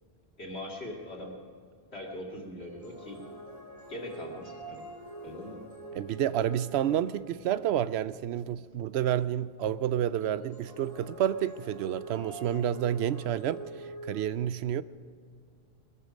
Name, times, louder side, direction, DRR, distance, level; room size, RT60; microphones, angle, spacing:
voice 1, 0.4-1.4 1.9-3.3 3.9-4.9 5.2-5.6, left 1 dB, 85° left, 2.9 m, -41 dB
sound 1, 2.6-7.7 10.2-14.2, right 2 dB, 35° right, 3.2 m, -45 dB
voice 2, 5.9-14.8, right 10 dB, 85° right, 0.8 m, -29 dB
21.0 x 13.5 x 5.1 m
omnidirectional pair, 1.1 m